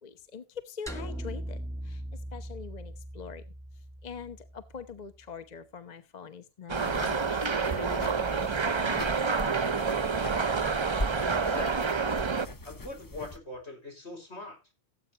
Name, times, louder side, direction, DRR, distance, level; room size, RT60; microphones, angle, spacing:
voice 1, 0.0-1.6 1.8-2.0 2.3-3.4 4.0-9.2, left 6 dB, 40° left, 11 dB, 0.9 m, -44 dB
sound 1, 0.9-5.2, right 1 dB, 5° left, 1.7 m, -40 dB
sound 2, 6.7-13.4, left 1 dB, 25° left, 0.6 m, -40 dB
sound 3, 6.7-12.5, right 5 dB, 30° right, 0.6 m, -28 dB
voice 2, 11.4-12.0 12.6-14.6, left 2 dB, 75° left, 3 dB, 5.6 m, -42 dB
17.0 x 8.4 x 2.9 m, 0.26 s
omnidirectional pair, 1.1 m